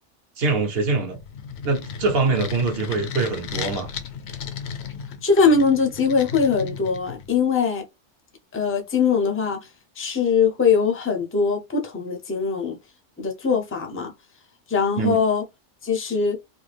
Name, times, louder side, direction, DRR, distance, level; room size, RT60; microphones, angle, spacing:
voice 1, 0.4-1.2 1.6-3.9 15.0-15.2, right 4 dB, 55° right, 1.0 m, -23 dB
sound 1, 1.1-7.4, left 6 dB, 70° left, 0.8 m, -35 dB
voice 2, 5.2-7.8 8.5-9.6 10.0-12.8 13.2-14.1 14.7-15.4 15.8-16.4, left 5 dB, 15° left, 0.4 m, -21 dB
2.6 x 2.3 x 3.3 m
omnidirectional pair, 1.2 m